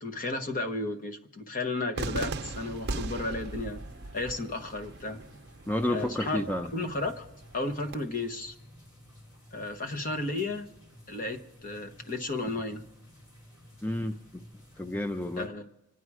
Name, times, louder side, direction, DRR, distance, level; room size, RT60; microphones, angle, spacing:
voice 1, 0.0-3.8 4.1-5.2 5.9-6.4 6.7-7.3 7.5-8.5 9.5-10.7 11.1-12.9 15.4-15.6, left 2 dB, 40° left, 1.1 m, -33 dB
Cheering / Fireworks, 2.0-8.0, right 3 dB, 50° right, 0.7 m, -39 dB
sound 1, 2.5-15.5, equal, 85° left, 5.2 m, -54 dB
voice 2, 5.7-6.7 13.8-14.2 14.8-15.5, left 1 dB, 10° left, 0.4 m, -30 dB
26.0 x 10.0 x 4.8 m
head